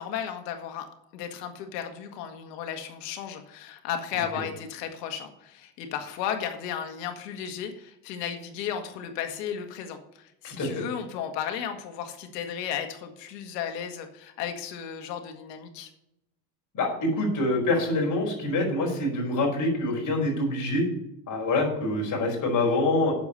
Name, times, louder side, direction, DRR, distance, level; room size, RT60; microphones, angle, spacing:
voice 1, 0.0-15.9, left 8 dB, 80° left, 6 dB, 1.9 m, -34 dB
voice 2, 10.4-10.8 16.7-20.8 21.3-23.1, left 2 dB, 40° left, 0 dB, 4.9 m, -25 dB
8.3 x 7.2 x 6.7 m, 0.84 s
supercardioid pair, 115°, 48 cm